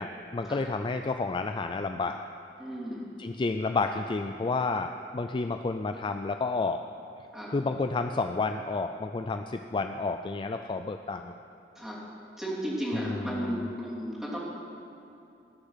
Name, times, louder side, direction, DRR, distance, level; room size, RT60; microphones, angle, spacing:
voice 1, 0.0-2.3 3.2-6.8 7.5-11.3 12.9-13.6, left 3 dB, 30° left, 6 dB, 0.3 m, -30 dB
voice 2, 2.6-3.0 7.3-7.5 11.7-12.0 12.4-14.4, equal, 5° right, -7 dB, 3.0 m, -34 dB
19.5 x 6.7 x 5.7 m, 2.7 s
head